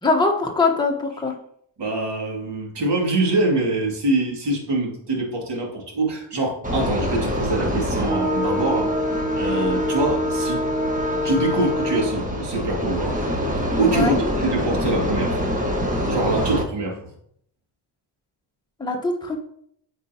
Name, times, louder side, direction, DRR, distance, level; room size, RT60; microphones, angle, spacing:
voice 1, 0.0-1.3 13.9-14.1 18.8-19.4, left 3 dB, 10° left, 0 dB, 1.2 m, -22 dB
voice 2, 1.8-8.9 9.3-10.6 11.2-15.5 16.1-17.0, right 2 dB, 55° right, -1 dB, 2.6 m, -24 dB
sound 1, 6.6-16.6, equal, 15° right, 1.6 m, -24 dB
8.7 x 4.7 x 3.0 m, 0.67 s
supercardioid pair, 60°, 49 cm